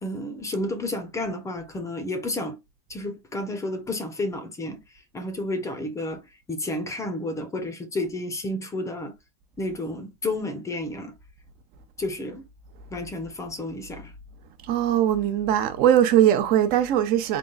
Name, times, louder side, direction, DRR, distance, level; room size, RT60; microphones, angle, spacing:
voice 1, 0.0-2.6 2.9-4.8 5.1-6.2 6.5-9.1 9.6-11.1 12.0-12.4 12.9-14.1, left 1 dB, 15° left, 0.6 m, -31 dB
voice 2, 14.6-17.4, right 11 dB, 45° right, 0.7 m, -20 dB
3.8 x 2.3 x 3.9 m
supercardioid pair, 130°, 21 cm